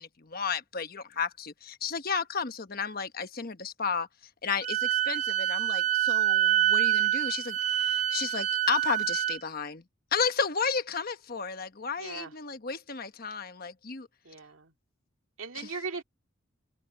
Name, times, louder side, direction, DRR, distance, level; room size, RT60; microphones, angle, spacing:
voice 1, 0.0-4.1 4.4-9.8 10.1-14.1, left 5 dB, 50° left, 1.2 m, -33 dB
Wind instrument woodwind instrument, 4.6-9.4, right 12 dB, 35° right, 0.4 m, -26 dB
voice 2, 12.0-12.3 14.2-14.7 15.4-16.0, right 4 dB, 85° right, 2.1 m, -38 dB
head